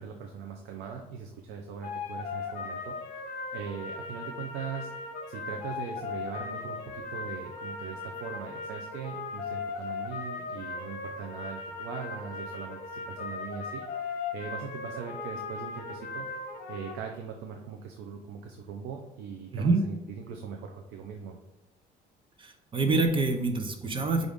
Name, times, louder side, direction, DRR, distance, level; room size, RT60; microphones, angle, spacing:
voice 1, 0.0-4.9 5.3-16.3 16.7-21.4, right 6 dB, 85° right, 2 dB, 0.5 m, -40 dB
sound 1, 1.8-16.9, left 4 dB, 60° left, 0.8 m, -38 dB
voice 2, 19.5-19.8 22.4-24.3, right 3 dB, 30° right, 5 dB, 0.6 m, -26 dB
4.8 x 2.5 x 3.5 m, 0.96 s
cardioid pair, 110°, 17 cm